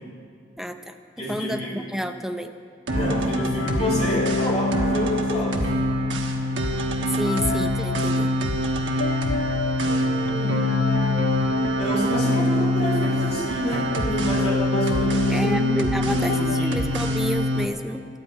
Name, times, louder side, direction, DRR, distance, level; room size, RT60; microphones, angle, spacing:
voice 1, 0.6-2.5 7.1-8.3 15.3-18.0, equal, ahead, 6 dB, 0.6 m, -30 dB
voice 2, 1.2-1.7 2.9-5.7 9.8-10.7 11.7-15.5 15.9-16.8, left 1 dB, 35° left, -4 dB, 4.0 m, -29 dB
sound 1, 2.9-16.6, left 3 dB, 70° left, 0.4 m, -30 dB
sound 2, 2.9-17.7, equal, 75° right, 1.3 m, -24 dB
11.5 x 9.2 x 8.7 m, 2.2 s
head